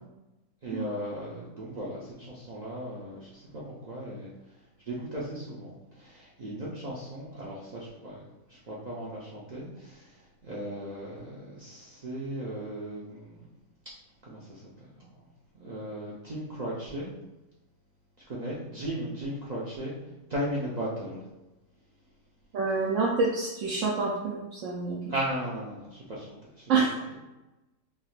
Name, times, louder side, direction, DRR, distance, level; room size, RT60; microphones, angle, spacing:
voice 1, 0.6-4.3 4.9-8.2 8.5-10.1 10.4-13.5 14.2-15.1 15.5-17.1 18.3-20.0 20.3-21.2 25.1-26.7, right 1 dB, 85° right, -7 dB, 0.3 m, -36 dB
voice 2, 22.5-25.0 26.7-26.9, right 4 dB, 70° right, -4 dB, 0.9 m, -27 dB
3.6 x 2.4 x 2.4 m, 1.0 s
omnidirectional pair, 1.6 m